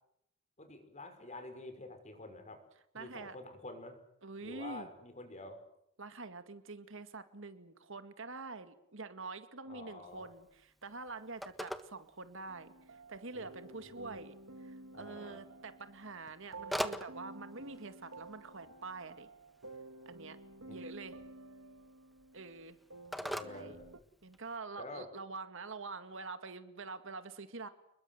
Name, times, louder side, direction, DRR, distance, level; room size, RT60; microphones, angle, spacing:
voice 1, 0.6-2.6 2.9-4.1 4.4-5.6 9.7-10.3 13.3-13.5 13.9-14.1 14.9-15.4 20.7-20.8 23.2-23.9 24.8-25.1, left 2 dB, 35° left, 8 dB, 5.6 m, -48 dB
voice 2, 2.9-3.4 4.2-4.9 6.0-14.3 14.6-19.3 20.1-20.4 20.7-21.2 22.3-22.8 23.5-23.8 24.2-27.7, right 3 dB, 65° right, 10 dB, 2.1 m, -46 dB
Telephone, 10.1-24.6, equal, ahead, 1.6 m, -47 dB
sound 1, 12.5-24.0, right 2 dB, 85° right, 1.7 m, -52 dB
29.5 x 21.5 x 7.9 m, 0.77 s
head